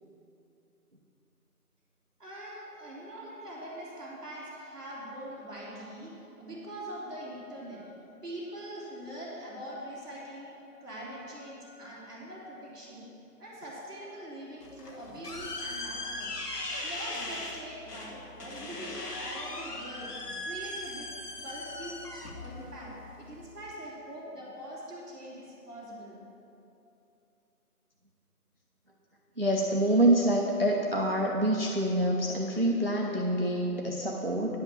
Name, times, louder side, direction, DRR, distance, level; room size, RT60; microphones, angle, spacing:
voice 1, 2.2-13.1 13.4-16.3 16.7-21.1 21.4-22.0 22.3-22.9 23.2-26.2, right 1 dB, ahead, -26 dB, 1.9 m, -43 dB
sound 1, 14.6-23.7, left 2 dB, 90° left, 1.5 m, -39 dB
voice 2, 29.4-34.6, right 1 dB, 40° right, -1 dB, 0.5 m, -26 dB
10.0 x 5.7 x 7.0 m, 2.9 s
figure-of-eight pair, 175°, 46 cm